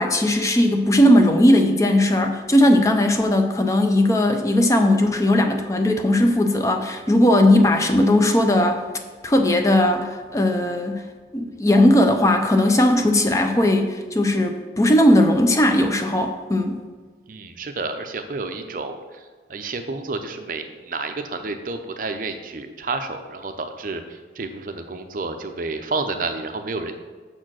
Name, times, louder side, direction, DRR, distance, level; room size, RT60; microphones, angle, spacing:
voice 1, 0.0-8.8 9.2-11.0 11.3-16.8, left 1 dB, 15° left, 5 dB, 0.4 m, -18 dB
voice 2, 17.3-26.9, right 3 dB, 50° right, 7 dB, 0.6 m, -30 dB
6.3 x 4.4 x 6.2 m, 1.4 s
head